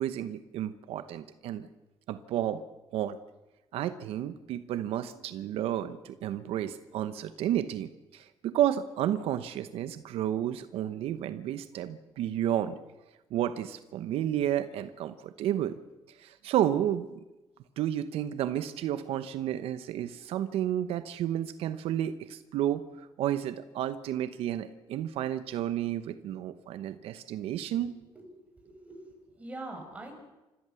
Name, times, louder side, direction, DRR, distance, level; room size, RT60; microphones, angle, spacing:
voice 1, 0.0-1.7 2.1-2.6 2.9-3.2 3.7-12.8 13.3-15.7 16.1-17.1 17.8-27.9, right 11 dB, 85° right, 12 dB, 0.9 m, -31 dB
voice 2, 28.6-30.1, right 2 dB, 15° right, 2 dB, 5.7 m, -43 dB
27.0 x 14.5 x 7.0 m, 1.0 s
cardioid pair, 115°, 10 cm